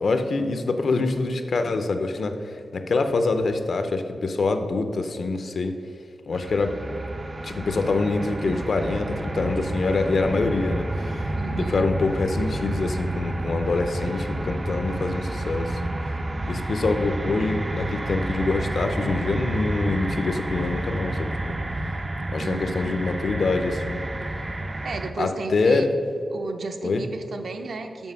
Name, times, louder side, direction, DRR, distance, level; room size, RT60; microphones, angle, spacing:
voice 1, 0.0-5.8 6.3-6.8 7.4-15.8 16.5-21.6 22.3-24.0 25.2-25.9 26.8-27.1, left 3 dB, 55° left, 7 dB, 0.6 m, -25 dB
sound 1, 6.3-25.1, right 1 dB, 20° right, 0.4 m, -30 dB
voice 2, 11.3-11.9 22.4-23.0 24.8-25.9 26.3-28.1, right 4 dB, 65° right, 6 dB, 0.6 m, -33 dB
7.1 x 5.9 x 5.5 m, 2.5 s
wide cardioid pair, 180°, 0 cm